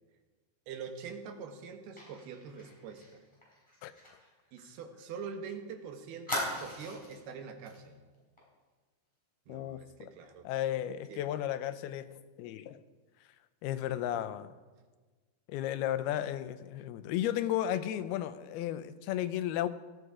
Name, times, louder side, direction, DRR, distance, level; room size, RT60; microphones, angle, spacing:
voice 1, 0.7-3.2 4.5-8.0 9.5-10.5 11.1-11.3 13.9-14.3, right 6 dB, 85° right, 3.3 m, -44 dB
Fire, 2.0-5.4 5.7-5.8 6.3-7.2 7.7-7.8 8.1-8.4, left 1 dB, 5° left, 5.9 m, -40 dB
voice 2, 9.5-10.1 10.4-12.8 13.6-14.5 15.5-19.7, left 12 dB, 90° left, 2.7 m, -34 dB
18.0 x 14.0 x 4.9 m
omnidirectional pair, 4.4 m